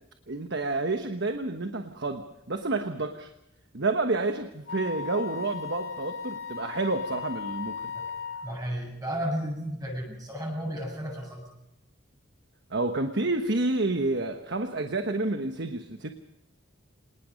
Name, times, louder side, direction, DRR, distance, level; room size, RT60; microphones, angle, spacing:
voice 1, 0.3-3.3 3.7-7.9 12.7-16.1, right 2 dB, 55° right, 6 dB, 1.2 m, -29 dB
Wind instrument woodwind instrument, 4.7-8.5, left 6 dB, 65° left, 1.9 m, -37 dB
voice 2, 8.4-11.5, equal, 20° right, 0 dB, 7.5 m, -33 dB
27.0 x 20.0 x 5.3 m, 0.87 s
head